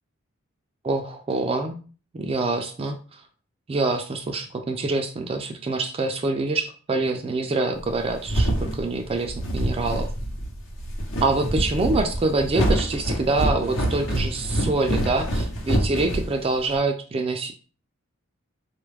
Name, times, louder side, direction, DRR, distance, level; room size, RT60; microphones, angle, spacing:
voice 1, 0.8-1.8 2.1-3.2 3.7-10.1 11.2-17.5, right 3 dB, 30° right, 4 dB, 0.3 m, -25 dB
sound 1, 7.9-16.8, right 1 dB, 70° left, 0.8 m, -26 dB
3.8 x 2.3 x 3.2 m, 0.38 s
head